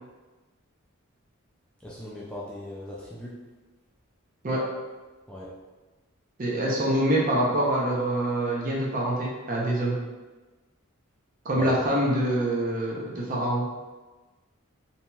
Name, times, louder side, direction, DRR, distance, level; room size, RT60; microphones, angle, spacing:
voice 1, 1.8-3.4 5.3-5.5 11.5-11.8, left 2 dB, 5° left, -6 dB, 0.3 m, -38 dB
voice 2, 6.4-10.0 11.4-13.6, right 1 dB, 40° right, -3 dB, 0.6 m, -25 dB
2.8 x 2.8 x 2.2 m, 1.2 s
head